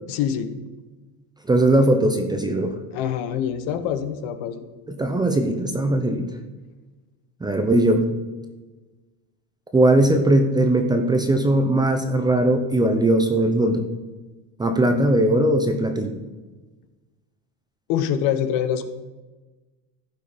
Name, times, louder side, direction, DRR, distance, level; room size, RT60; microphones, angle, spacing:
voice 1, 0.1-0.5 2.9-4.7 17.9-18.8, left 9 dB, 60° left, 10 dB, 1.2 m, -25 dB
voice 2, 1.5-2.8 4.9-6.3 7.4-8.1 9.7-13.8 14.6-16.1, right 1 dB, 10° right, 6 dB, 0.6 m, -19 dB
15.0 x 5.5 x 5.2 m, 1.2 s
supercardioid pair, 145°, 45 cm